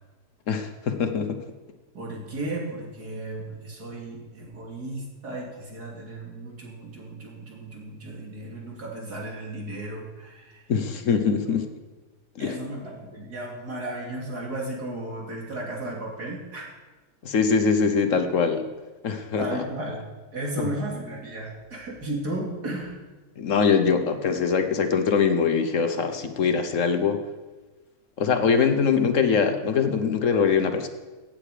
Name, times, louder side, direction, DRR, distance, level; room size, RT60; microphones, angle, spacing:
voice 1, 0.5-1.4 10.7-11.6 12.4-12.5 17.2-18.6 19.0-19.4 20.6-20.7 23.4-27.2 28.2-30.9, left 6 dB, 55° left, 8 dB, 1.2 m, -23 dB
voice 2, 1.9-10.6 11.4-11.6 12.4-16.7 19.4-20.0 20.3-23.0, right 1 dB, 70° right, -2 dB, 3.3 m, -34 dB
16.0 x 8.9 x 5.0 m, 1.2 s
omnidirectional pair, 1.7 m